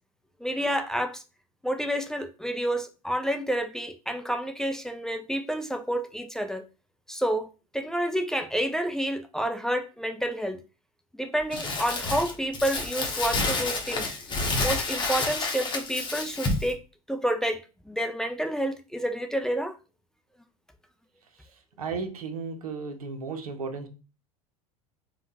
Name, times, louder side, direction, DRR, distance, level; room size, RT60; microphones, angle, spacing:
voice 1, 0.4-1.2 1.6-6.7 7.1-10.6 11.2-14.1 14.6-16.8 17.1-19.8, equal, 5° left, 0.3 m, -29 dB
Crumpling crinkling, 11.5-16.7, left 3 dB, 25° left, 0.8 m, -29 dB
voice 2, 21.8-23.9, right 4 dB, 80° right, 0.7 m, -34 dB
3.5 x 2.2 x 2.7 m
figure-of-eight pair, 80°, 19 cm